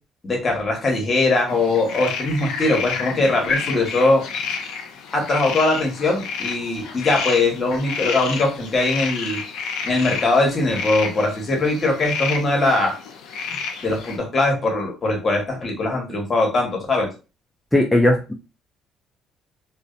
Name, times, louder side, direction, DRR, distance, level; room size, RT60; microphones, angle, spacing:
voice 1, 0.2-4.2 5.1-9.4 9.8-13.0 13.8-17.1, left 2 dB, 40° left, 1 dB, 1.1 m, -21 dB
sound 1, 1.5-14.2, left 5 dB, 80° left, 0.4 m, -30 dB
voice 2, 17.7-18.3, left 1 dB, 10° left, 0 dB, 0.4 m, -17 dB
2.6 x 2.1 x 2.4 m, 0.31 s
supercardioid pair, 75°, 0 cm